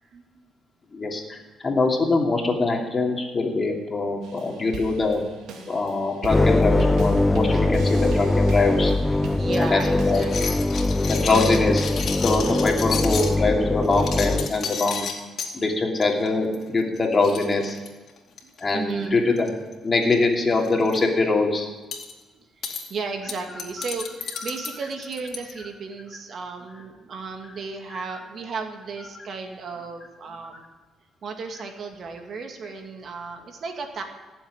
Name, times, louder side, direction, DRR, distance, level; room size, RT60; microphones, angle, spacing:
voice 1, 0.1-0.5 7.5-7.7 9.4-10.5 14.8-14.9 18.4-19.2 22.3-30.6 31.2-34.0, right 4 dB, 55° right, 4 dB, 2.2 m, -35 dB
voice 2, 0.9-5.2 5.7-8.9 9.6-10.6 11.0-11.9 12.2-15.0 15.5-17.8 18.6-19.5 19.8-21.7, left 3 dB, 30° left, 1 dB, 2.7 m, -23 dB
sound 1, 4.2-10.5, right 4 dB, 80° right, 2.2 m, -39 dB
sound 2, 6.3-14.5, left 2 dB, 15° left, 0.5 m, -22 dB
sound 3, 9.5-13.3 13.8-15.5 16.0-16.3 16.5-16.7 17.0-17.1 17.2-18.6 19.4-19.7 20.0-20.2 20.6-21.0 21.9-22.1 22.6-22.8 23.3-25.5, left 6 dB, 60° left, 2.4 m, -32 dB
15.5 x 7.3 x 9.9 m, 1.2 s
cardioid pair, 90°, 0 cm